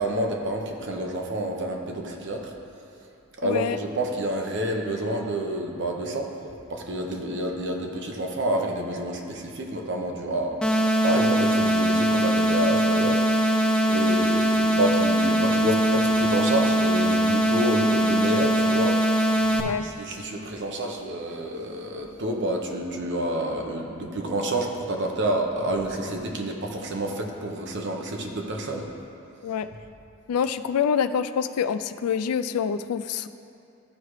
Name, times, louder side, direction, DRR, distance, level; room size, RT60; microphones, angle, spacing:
voice 1, 0.0-2.5 3.4-6.3 6.7-13.2 13.9-19.0 19.8-28.9, right 1 dB, 55° right, 1 dB, 0.9 m, -28 dB
voice 2, 3.4-3.8 13.9-14.3 19.5-19.9 29.4-29.7 30.3-33.3, left 7 dB, 85° left, 12 dB, 0.3 m, -26 dB
sound 1, 10.6-19.6, right 1 dB, 5° left, 0.3 m, -21 dB
14.0 x 4.8 x 3.2 m, 2.7 s
head